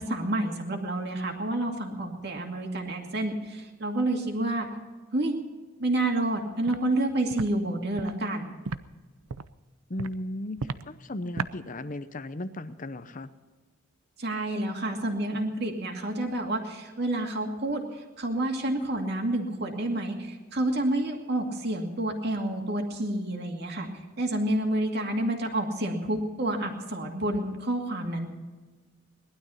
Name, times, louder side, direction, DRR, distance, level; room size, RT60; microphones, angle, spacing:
voice 1, 0.0-4.7 5.1-5.4 5.8-8.5 14.2-23.9 24.2-28.3, right 1 dB, 50° right, 2 dB, 2.4 m, -29 dB
Walk footsteps, 6.7-6.8 7.3-7.5 8.0-8.1 8.7-8.8 9.3-9.5 10.0-10.1 10.6-10.8 11.4-11.5, right 4 dB, 80° right, 0.6 m, -33 dB
voice 2, 9.9-13.3, left 1 dB, 35° left, 12 dB, 0.7 m, -36 dB
19.5 x 12.5 x 5.7 m, 1.3 s
head